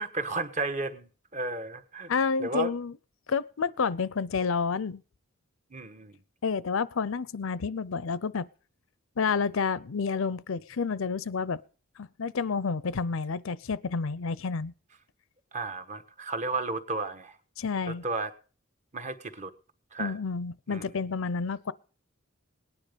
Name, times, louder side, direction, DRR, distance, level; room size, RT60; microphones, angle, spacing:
voice 1, 0.0-2.1 2.4-2.7 5.7-6.2 15.5-17.3 17.9-18.3 18.9-19.5 19.9-20.1 20.7-20.9, right 3 dB, 35° right, 1.3 m, -33 dB
voice 2, 2.1-2.9 3.3-5.0 6.4-8.5 9.2-11.6 12.0-14.7 17.6-18.0 20.0-21.7, left 5 dB, 65° left, 0.6 m, -29 dB
18.5 x 9.9 x 5.2 m
head